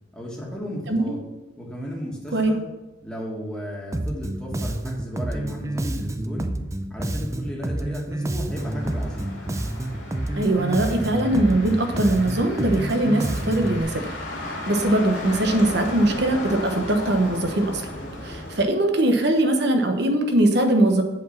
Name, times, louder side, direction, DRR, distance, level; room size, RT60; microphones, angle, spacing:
voice 1, 0.1-1.2 1.6-2.6 3.0-6.5 6.9-9.4, equal, 5° left, -3 dB, 1.8 m, -34 dB
Bass guitar, 3.9-13.8, right 1 dB, 15° right, 0.5 m, -29 dB
Motor vehicle (road), 8.5-18.6, left 1 dB, 85° left, 2.6 m, -35 dB
voice 2, 10.4-14.1 14.4-17.8 18.2-21.0, right 1 dB, 65° right, 5 dB, 1.2 m, -21 dB
8.1 x 4.8 x 5.9 m, 1.0 s
head